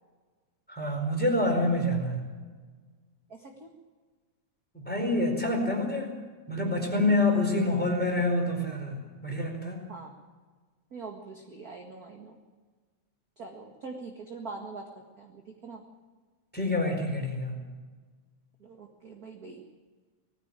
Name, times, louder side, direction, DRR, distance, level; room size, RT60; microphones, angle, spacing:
voice 1, 0.7-2.3 4.7-6.1 6.5-9.0 9.2-9.8 16.5-17.6, left 2 dB, 5° left, 2 dB, 4.3 m, -27 dB
voice 2, 3.3-3.7 9.9-10.1 10.9-12.4 13.4-14.9 15.2-15.8 18.6-19.6, right 4 dB, 35° right, 2 dB, 1.9 m, -43 dB
20.0 x 15.0 x 8.9 m, 1.4 s
omnidirectional pair, 3.4 m